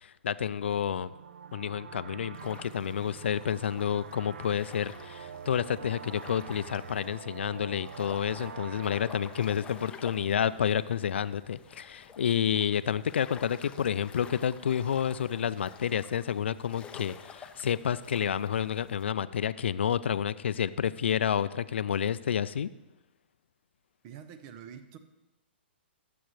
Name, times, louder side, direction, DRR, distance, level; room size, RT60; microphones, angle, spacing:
voice 1, 0.0-1.1 1.5-22.7, left 8 dB, 75° left, 16 dB, 0.4 m, -30 dB
sound 1, 0.6-11.0, right 7 dB, 70° right, 0.4 m, -46 dB
sound 2, 2.3-19.1, left 6 dB, 15° left, 0.6 m, -51 dB
voice 2, 24.0-25.0, right 8 dB, 40° right, 10 dB, 0.9 m, -46 dB
12.5 x 7.7 x 3.2 m, 1.0 s
hypercardioid pair, 130°, 6 cm